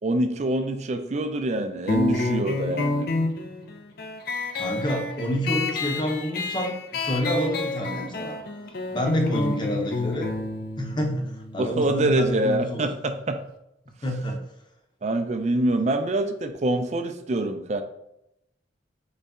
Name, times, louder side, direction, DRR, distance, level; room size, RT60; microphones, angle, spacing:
voice 1, 0.0-3.1 11.6-13.4 15.0-17.8, right 1 dB, 40° right, 7 dB, 0.4 m, -25 dB
sound 1, 1.9-13.0, left 2 dB, 55° left, 0.5 m, -30 dB
voice 2, 4.6-8.4 8.9-10.3 10.8-12.9 14.0-14.4, equal, 25° left, 1 dB, 0.7 m, -28 dB
4.0 x 3.2 x 3.6 m, 0.82 s
head